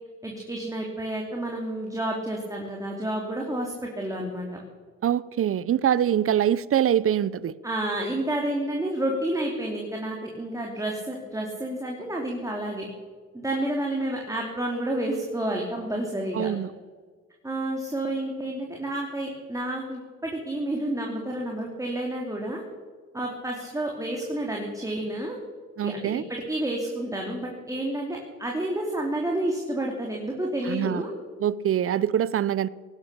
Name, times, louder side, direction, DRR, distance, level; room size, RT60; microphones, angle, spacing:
voice 1, 0.2-4.5 7.6-12.9 13.3-16.5 17.4-22.6 23.1-25.4 25.8-31.1, right 1 dB, 10° right, 0 dB, 2.8 m, -30 dB
voice 2, 5.0-7.5 16.3-16.7 25.8-26.2 30.7-31.0 31.4-32.7, right 10 dB, 45° right, 20 dB, 0.7 m, -24 dB
18.5 x 11.0 x 6.8 m, 1.5 s
cardioid pair, 90°, 30 cm